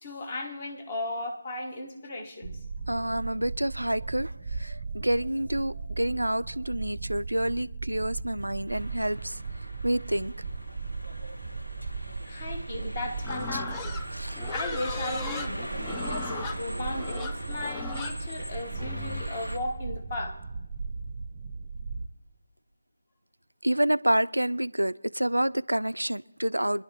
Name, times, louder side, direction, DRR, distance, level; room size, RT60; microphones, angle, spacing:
voice 1, 0.0-2.5 12.2-13.9 14.3-15.7 16.0-20.4, left 2 dB, 30° left, 1.3 m, -36 dB
sound 1, 2.4-22.1, right 4 dB, 30° right, 0.6 m, -37 dB
voice 2, 2.9-9.4 9.8-10.3 13.5-13.6 14.1-14.4 23.6-26.8, right 1 dB, 85° right, 0.3 m, -28 dB
sound 2, 8.7-19.6, equal, 85° left, 2.0 m, -41 dB
Livestock farm animals working animals, 13.2-19.3, left 4 dB, 10° left, 0.4 m, -38 dB
25.5 x 11.0 x 3.0 m
figure-of-eight pair, 160°, 0 cm